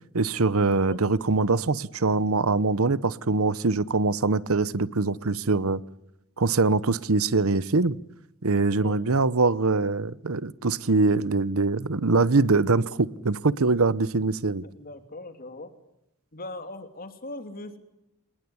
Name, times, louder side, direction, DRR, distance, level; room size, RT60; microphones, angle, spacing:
voice 1, 0.1-5.8 6.4-8.0 8.4-14.6, right 3 dB, 70° right, 0.9 m, -23 dB
voice 2, 14.6-15.7 16.3-17.8, left 2 dB, 45° left, 3.0 m, -39 dB
27.0 x 20.5 x 9.8 m
head